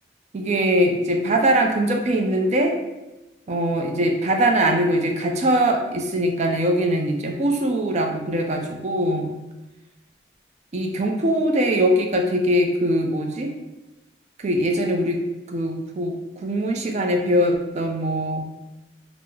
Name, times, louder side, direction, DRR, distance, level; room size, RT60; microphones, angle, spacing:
voice 1, 0.3-2.8 3.5-9.3 10.7-13.5 14.4-18.4, right 1 dB, 40° right, 3 dB, 0.4 m, -22 dB
3.1 x 2.0 x 3.4 m, 1.0 s
head